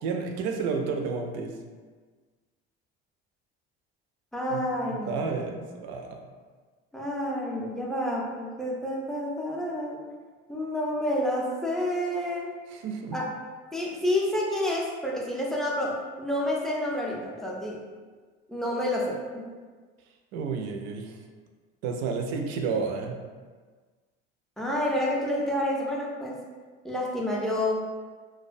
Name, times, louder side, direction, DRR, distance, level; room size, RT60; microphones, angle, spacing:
voice 1, 0.0-1.6 4.5-4.6 5.1-6.2 12.7-13.2 20.3-21.2 21.8-23.2, right 5 dB, 65° right, 3 dB, 0.4 m, -31 dB
voice 2, 4.3-5.2 6.9-10.1 10.5-12.5 13.1-13.3 13.7-17.9 18.5-19.5 24.6-26.4 26.8-27.7, left 1 dB, ahead, -2 dB, 0.4 m, -29 dB
2.3 x 2.1 x 2.5 m, 1.5 s
hypercardioid pair, 80°, 29 cm